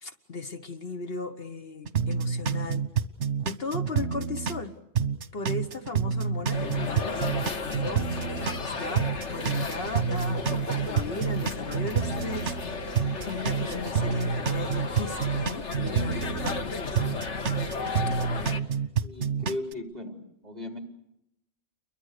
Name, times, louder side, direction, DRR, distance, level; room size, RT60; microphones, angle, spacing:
voice 1, 0.0-2.9 3.4-4.8 5.3-8.1 8.6-12.5 12.9-17.3, left 3 dB, 60° left, 7 dB, 1.6 m, -37 dB
sound 1, 1.9-4.6 5.0-8.6 9.0-12.6 13.0-16.6 17.0-19.7, right 6 dB, 80° right, 1.5 m, -28 dB
sound 2, 6.5-18.6, left 3 dB, 85° left, 1.8 m, -34 dB
Ringtone, 7.4-14.2, right 1 dB, 60° right, 4.8 m, -49 dB
voice 2, 19.0-20.8, left 1 dB, 35° right, 3 dB, 3.9 m, -37 dB
30.0 x 23.0 x 6.7 m, 0.80 s
omnidirectional pair, 1.2 m